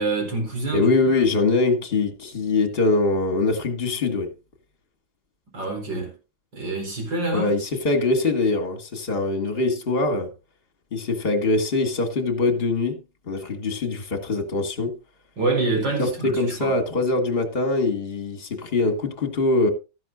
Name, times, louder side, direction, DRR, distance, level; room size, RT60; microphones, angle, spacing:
voice 1, 0.0-1.1 5.5-6.1 6.5-7.5 15.4-16.7, right 3 dB, 70° right, 5.1 m, -26 dB
voice 2, 0.7-4.3 7.3-10.3 10.9-13.0 13.3-14.9 16.0-19.7, left 3 dB, 30° left, 2.1 m, -23 dB
14.0 x 11.0 x 2.6 m
omnidirectional pair, 2.1 m